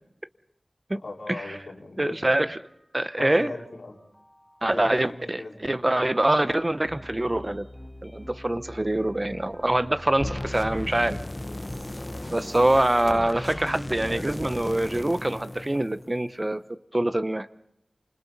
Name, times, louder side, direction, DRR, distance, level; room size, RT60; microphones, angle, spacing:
voice 1, 1.0-2.4 3.2-4.0 4.6-5.7 14.1-14.3, left 2 dB, 85° left, 0 dB, 3.3 m, -39 dB
voice 2, 2.0-2.6 2.9-3.5 4.6-7.7 8.0-11.2 12.3-16.6 16.9-17.5, right 1 dB, 30° right, 12 dB, 0.8 m, -24 dB
sound 1, 2.1-15.0, left 1 dB, 5° left, 2.1 m, -45 dB
sound 2, 10.2-16.4, left 1 dB, 30° left, 0.8 m, -36 dB
29.0 x 26.5 x 4.1 m, 0.76 s
wide cardioid pair, 60°, 0 cm